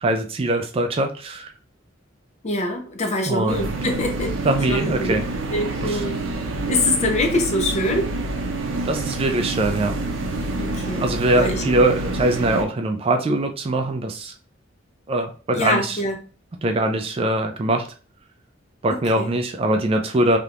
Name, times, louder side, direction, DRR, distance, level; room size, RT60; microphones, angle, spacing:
voice 1, 0.0-1.5 3.3-3.7 4.4-5.2 5.8-6.1 8.8-9.9 11.0-14.3 15.1-16.0 16.6-17.9 18.8-20.4, right 1 dB, 30° right, 6 dB, 0.3 m, -22 dB
voice 2, 2.4-4.4 4.7-5.1 5.5-6.2 6.7-8.1 10.6-11.1 11.4-11.6 15.5-16.2 18.9-19.3, left 1 dB, 35° left, 4 dB, 0.6 m, -24 dB
sound 1, 3.5-12.6, right 2 dB, 85° right, 0.6 m, -27 dB
3.4 x 2.8 x 2.4 m, 0.36 s
head